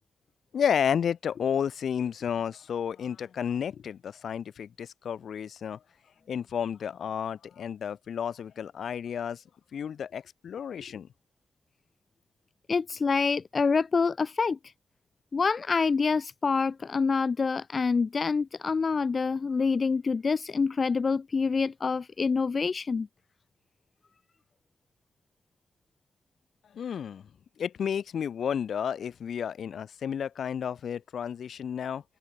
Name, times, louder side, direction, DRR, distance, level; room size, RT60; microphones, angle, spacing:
voice 1, 0.5-5.8 6.3-9.4 9.7-11.1 26.7-27.2 27.6-32.0, left 8 dB, 70° left, 5.6 m, -31 dB
voice 2, 12.7-14.6 15.3-23.1, left 5 dB, 40° left, 2.3 m, -26 dB
open air
wide cardioid pair, 115°, 0 cm